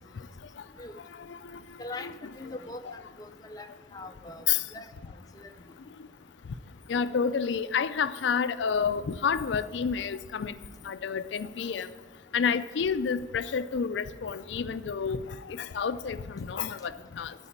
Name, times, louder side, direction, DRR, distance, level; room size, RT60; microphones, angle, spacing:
voice 1, 1.8-2.8 3.2-3.7 3.9-4.4 4.7-4.9 5.4-5.5, left 2 dB, 20° left, 0.5 m, -41 dB
voice 2, 6.9-10.6 10.8-11.9 12.3-17.3, left 6 dB, 80° left, 0.4 m, -29 dB
13.0 x 4.8 x 8.7 m
head